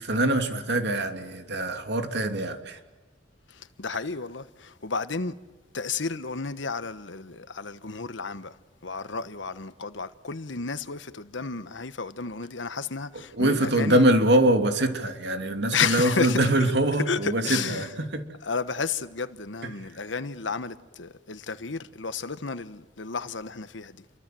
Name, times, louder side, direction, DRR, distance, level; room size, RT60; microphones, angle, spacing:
voice 1, 0.0-2.8 13.3-18.2, right 1 dB, 60° right, 2.9 m, -23 dB
voice 2, 3.5-5.3 5.7-14.0 15.7-16.5 17.0-17.9 18.4-24.0, left 5 dB, 75° left, 1.2 m, -32 dB
30.0 x 24.0 x 7.8 m
head